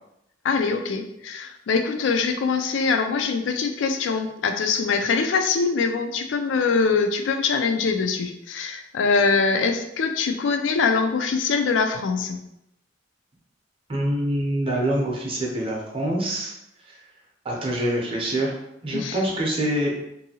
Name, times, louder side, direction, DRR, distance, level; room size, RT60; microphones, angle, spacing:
voice 1, 0.4-12.4 18.9-19.2, left 4 dB, 90° left, 6 dB, 0.4 m, -23 dB
voice 2, 13.9-16.5 17.4-18.6 18.8-20.1, right 1 dB, 30° right, -2 dB, 0.6 m, -25 dB
2.6 x 2.6 x 2.7 m, 0.82 s
head